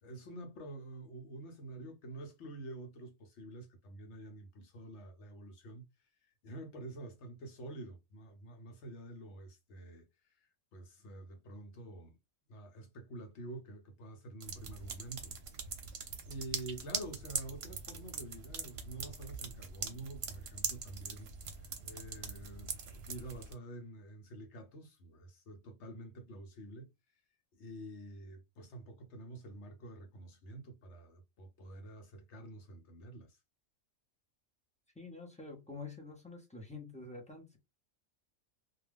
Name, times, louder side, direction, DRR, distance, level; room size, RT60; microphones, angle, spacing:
voice 1, 0.0-12.2 12.5-15.3 15.6-15.8 16.3-27.2 27.5-33.4, right 2 dB, 70° left, 0.9 m, -48 dB
sound 1, 14.4-23.5, right 6 dB, 65° right, 0.8 m, -42 dB
voice 2, 35.0-37.6, left 3 dB, 10° left, 0.4 m, -47 dB
2.3 x 2.3 x 3.3 m
omnidirectional pair, 1.3 m